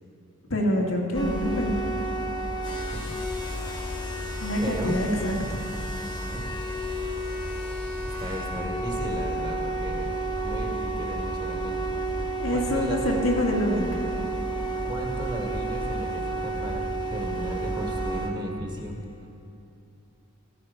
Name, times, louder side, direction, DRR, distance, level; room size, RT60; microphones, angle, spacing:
voice 1, 0.5-1.8 4.4-5.6 12.4-14.0, equal, 65° left, -1 dB, 2.4 m, -26 dB
sound 1, 1.1-18.3, right 2 dB, 20° left, 1.7 m, -31 dB
voice 2, 4.6-5.0 6.3-6.4 8.2-10.1 10.4-12.1 12.5-13.0 14.8-19.0, equal, 20° right, 1 dB, 1.7 m, -35 dB
15.5 x 15.0 x 5.2 m, 2.8 s
head